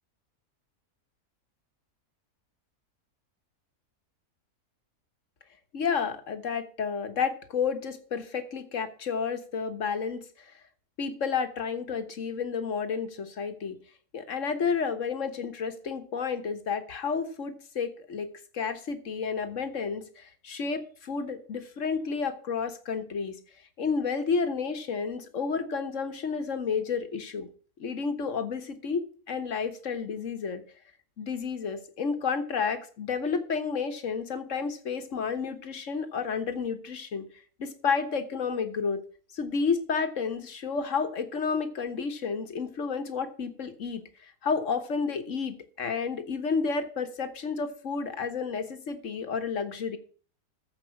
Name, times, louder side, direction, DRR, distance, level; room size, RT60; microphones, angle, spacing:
voice 1, 5.7-10.2 11.0-13.8 14.1-18.3 18.5-23.4 23.8-27.5 27.8-30.6 31.2-37.3 37.6-39.0 39.3-50.0, left 5 dB, 55° left, 8 dB, 1.6 m, -31 dB
14.5 x 5.5 x 6.0 m, 0.43 s
omnidirectional pair, 1.6 m